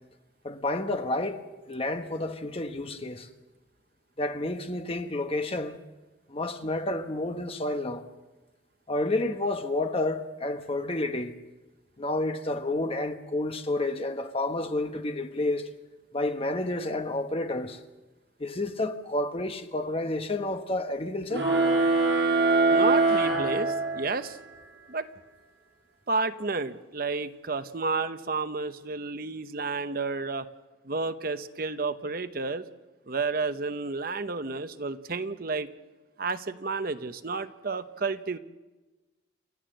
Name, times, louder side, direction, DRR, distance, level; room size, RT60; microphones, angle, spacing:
voice 1, 0.4-3.3 4.2-5.8 6.3-8.1 8.9-11.3 12.0-15.7 16.1-17.8 18.4-21.5, left 2 dB, 30° left, 1.1 m, -30 dB
sound 1, 21.3-24.3, right 3 dB, 75° right, 6.4 m, -23 dB
voice 2, 22.7-24.4 24.9-25.1 26.1-30.5 30.9-32.6 33.1-35.7 36.2-38.4, right 4 dB, 50° right, 0.8 m, -31 dB
28.5 x 13.5 x 7.8 m
head